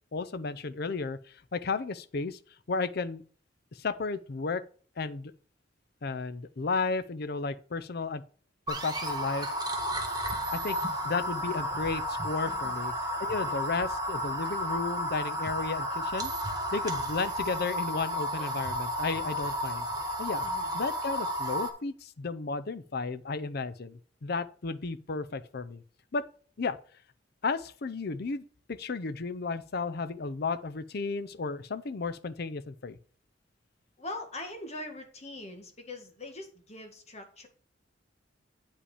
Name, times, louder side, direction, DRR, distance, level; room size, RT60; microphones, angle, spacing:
voice 1, 0.1-1.2 1.5-2.4 2.7-3.2 3.7-4.6 5.0-5.3 6.0-8.2 8.7-9.5 10.5-10.8 11.0-12.9 13.2-16.3 16.7-19.9 20.2-20.4 20.7-25.8 26.1-26.3 26.6-26.8 27.4-33.0, left 4 dB, 55° left, 0.6 m, -33 dB
sound 1, 8.7-21.7, equal, 20° right, 1.5 m, -32 dB
voice 2, 12.4-12.8 18.4-18.5 20.4-20.8 34.0-37.5, left 2 dB, 35° left, 1.7 m, -42 dB
8.6 x 5.1 x 4.9 m
head